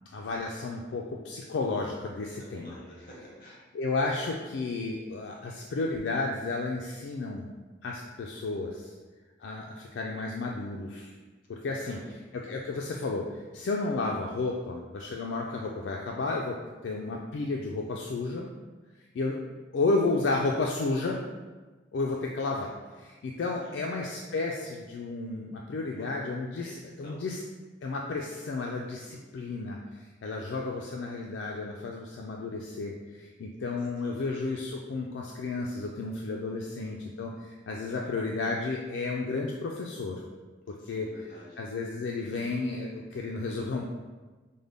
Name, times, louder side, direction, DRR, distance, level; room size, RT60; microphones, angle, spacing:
voice 1, 0.1-2.7 3.7-7.5 7.8-8.9 9.4-11.1 11.5-12.0 12.3-16.6 16.8-18.5 19.1-19.4 19.7-21.2 21.9-22.7 23.0-27.4 27.8-29.8 30.2-40.2 40.7-41.1 41.6-43.9, left 3 dB, 80° left, -1 dB, 0.4 m, -32 dB
voice 2, 2.3-3.6 8.3-8.7 11.6-12.2 23.6-23.8 25.9-26.1 26.6-27.3 29.0-29.6 30.7-31.2 33.8-34.3 36.6-37.0 37.8-38.2 40.8-41.6, equal, 50° left, -4 dB, 1.2 m, -52 dB
5.1 x 2.1 x 3.4 m, 1.3 s
head